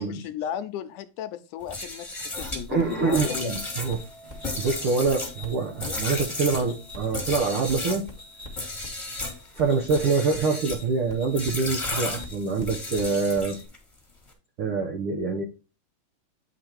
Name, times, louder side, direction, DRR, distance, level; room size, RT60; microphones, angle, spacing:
voice 1, 0.0-3.6, left 10 dB, 80° left, 11 dB, 2.1 m, -35 dB
sound 1, 1.6-8.1 8.5-9.4 9.8-10.8 11.3-13.8, left 2 dB, 15° left, 1.0 m, -34 dB
sound 2, 2.3-13.7, left 2 dB, 25° right, 1.0 m, -44 dB
voice 2, 2.7-4.0 4.3-8.1 9.5-13.6 14.6-15.4, right 4 dB, 80° right, 1 dB, 1.2 m, -25 dB
Chink clink, 3.2-9.5, right 3 dB, 50° right, 2.8 m, -53 dB
10.0 x 3.4 x 4.4 m, 0.31 s
omnidirectional pair, 3.8 m